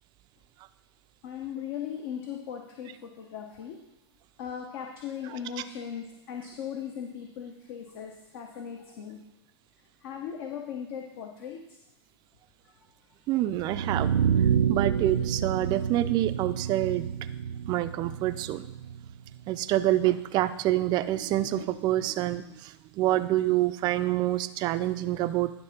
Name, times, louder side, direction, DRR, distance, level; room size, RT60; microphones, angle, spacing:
voice 1, 1.2-3.8 4.4-9.2 10.0-11.8 12.6-12.9, left 8 dB, 50° left, 3 dB, 0.9 m, -38 dB
voice 2, 13.3-14.1 14.7-17.1 17.7-18.7 19.5-25.5, right 14 dB, 30° right, 12 dB, 0.4 m, -27 dB
sound 1, 13.5-19.5, right 8 dB, 85° right, 0.4 m, -28 dB
11.0 x 3.7 x 5.7 m, 0.94 s
hypercardioid pair, 120°, 15 cm